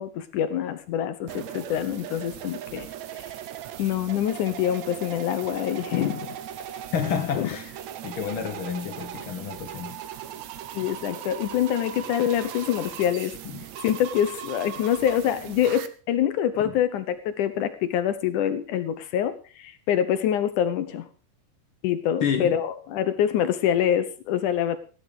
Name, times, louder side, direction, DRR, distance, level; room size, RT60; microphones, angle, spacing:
voice 1, 0.0-2.9 3.1-3.3 3.8-6.3 7.4-7.5 10.7-13.4 13.8-21.1 21.8-24.8, left 10 dB, 70° left, 12 dB, 2.1 m, -25 dB
sound 1, 1.3-15.9, right 10 dB, 70° right, 1.8 m, -39 dB
voice 2, 6.9-7.7 8.0-10.0 16.6-16.7 22.2-22.6, left 7 dB, 90° left, 5 dB, 1.1 m, -29 dB
15.5 x 11.5 x 4.9 m, 0.37 s
omnidirectional pair, 4.3 m